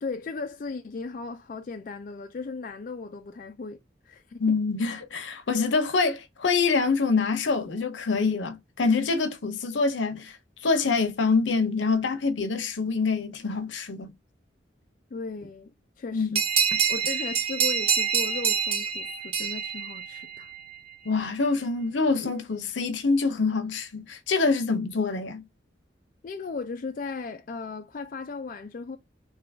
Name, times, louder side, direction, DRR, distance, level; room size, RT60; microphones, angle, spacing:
voice 1, 0.0-3.8 4.1-4.6 15.1-15.7 16.0-16.4 16.9-20.5 26.2-29.0, left 4 dB, 45° left, 0.4 m, -36 dB
voice 2, 4.4-10.4 10.6-14.1 16.1-16.4 21.0-25.4, left 4 dB, 85° left, 0.7 m, -25 dB
sound 1, 16.4-20.6, right 7 dB, 30° right, 0.5 m, -26 dB
2.8 x 2.4 x 3.3 m
head